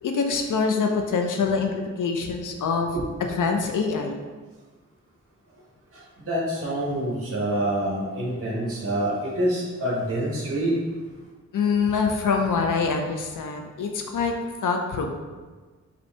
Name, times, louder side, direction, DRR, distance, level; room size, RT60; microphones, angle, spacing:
voice 1, 0.0-2.9 3.2-4.2 11.5-14.4 14.6-15.1, left 5 dB, 80° left, 3 dB, 0.5 m, -25 dB
voice 2, 6.3-10.8, right 1 dB, 45° right, -5 dB, 1.0 m, -26 dB
5.3 x 2.7 x 3.2 m, 1.4 s
wide cardioid pair, 105°, 31 cm